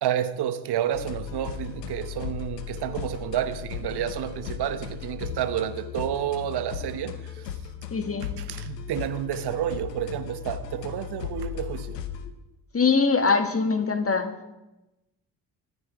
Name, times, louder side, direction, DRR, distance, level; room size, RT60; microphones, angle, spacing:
voice 1, 0.0-7.6 8.4-12.0, right 10 dB, 55° right, 1.2 m, -30 dB
sound 1, 0.9-12.3, left 8 dB, 85° left, 1.0 m, -36 dB
voice 2, 7.9-8.3 12.7-14.3, left 4 dB, 30° left, 2.1 m, -23 dB
24.0 x 9.9 x 4.9 m
figure-of-eight pair, 40°, 48 cm